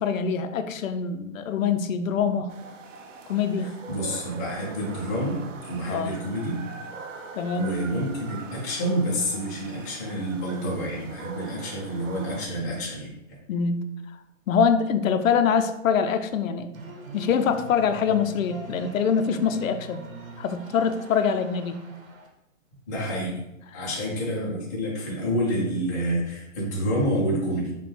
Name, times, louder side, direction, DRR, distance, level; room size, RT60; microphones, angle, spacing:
voice 1, 0.0-2.5 3.3-3.8 5.9-6.1 7.3-7.9 13.5-13.8 14.5-16.7 17.1-20.0 20.4-21.8 23.8-23.9, left 6 dB, 80° left, 9 dB, 0.5 m, -24 dB
sound 1, 2.5-12.5, right 5 dB, 70° right, 0.7 m, -42 dB
voice 2, 3.9-5.4 5.7-6.6 7.6-13.1 22.9-23.4 23.7-27.7, equal, 15° left, -6 dB, 0.4 m, -28 dB
sound 2, 16.7-22.3, right 2 dB, 85° right, 1.0 m, -42 dB
5.2 x 2.3 x 3.1 m, 0.88 s
hypercardioid pair, 160°, 39 cm